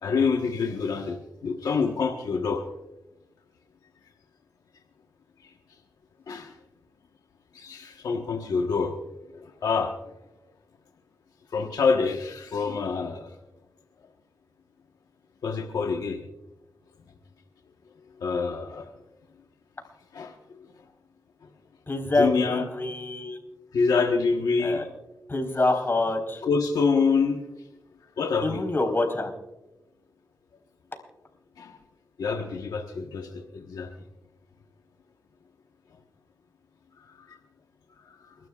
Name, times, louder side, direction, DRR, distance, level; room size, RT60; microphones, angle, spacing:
voice 1, 0.0-2.6 6.3-6.5 7.5-9.0 9.4-9.9 11.5-13.3 15.4-16.2 18.2-18.9 20.1-20.3 22.2-22.6 23.7-24.8 26.4-27.4 28.2-28.6 31.6-31.8 32.2-33.9 37.2-37.4 38.2-38.3, left 5 dB, 80° left, 2 dB, 1.2 m, -26 dB
voice 2, 21.9-23.4 24.6-24.9 25.3-26.4 28.4-29.3, left 2 dB, 35° left, 2 dB, 4.3 m, -26 dB
30.0 x 12.5 x 2.4 m, 0.98 s
cardioid pair, 55°, 6 cm